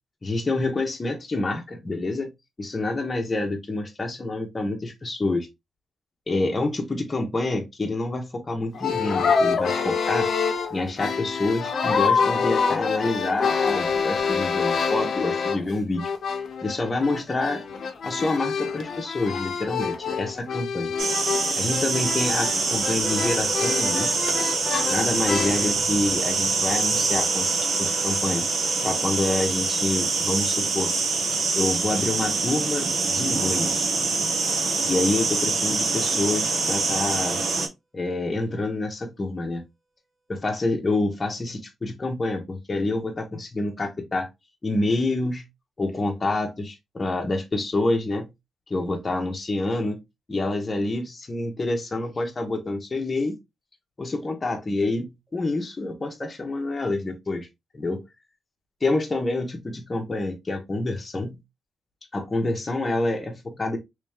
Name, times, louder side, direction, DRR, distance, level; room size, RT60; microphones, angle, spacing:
voice 1, 0.2-2.3 2.6-5.5 6.3-10.3 10.7-16.0 16.6-17.6 18.0-20.9 21.6-24.3 24.9-28.5 28.8-30.9 31.5-33.9 34.8-37.4 37.9-39.6 40.3-44.3 44.6-45.4 45.8-48.3 48.7-50.0 50.3-53.4 54.0-57.5 57.7-58.0 58.8-61.4 62.1-63.8, left 2 dB, 30° left, 1.0 m, -27 dB
sound 1, 8.7-15.7 16.0-25.7, left 5 dB, 65° left, 0.7 m, -26 dB
sound 2, 21.0-37.7, right 4 dB, 65° right, 1.1 m, -25 dB
sound 3, 22.0-33.4, right 2 dB, 45° right, 1.3 m, -39 dB
3.2 x 3.0 x 3.5 m
cardioid pair, 80°, 0 cm